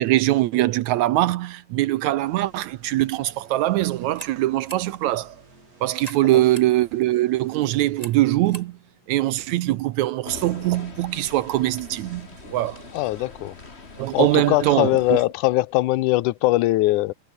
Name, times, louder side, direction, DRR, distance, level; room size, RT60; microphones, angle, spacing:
voice 1, 0.0-5.4 5.8-8.8 9.1-12.9 14.0-15.2, right 16 dB, 75° right, 1.7 m, -22 dB
sound 1, 2.2-8.7, right 3 dB, 45° right, 9.3 m, -53 dB
sound 2, 3.9-10.2, right 1 dB, 10° right, 5.8 m, -46 dB
sound 3, 10.2-15.2, left 3 dB, 20° left, 2.2 m, -42 dB
voice 2, 12.9-13.6 14.1-17.1, left 18 dB, 75° left, 2.2 m, -21 dB
omnidirectional pair, 3.9 m